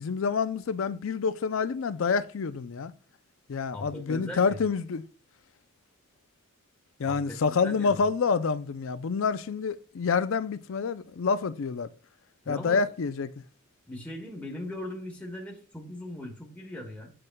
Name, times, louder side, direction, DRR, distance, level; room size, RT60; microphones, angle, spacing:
voice 1, 0.0-2.9 3.5-5.0 7.0-11.9 12.5-13.3, left 5 dB, 65° left, 0.5 m, -27 dB
voice 2, 3.7-4.6 7.0-8.0 12.4-12.8 13.9-17.1, left 1 dB, 5° left, 1.1 m, -39 dB
7.7 x 7.6 x 2.3 m
head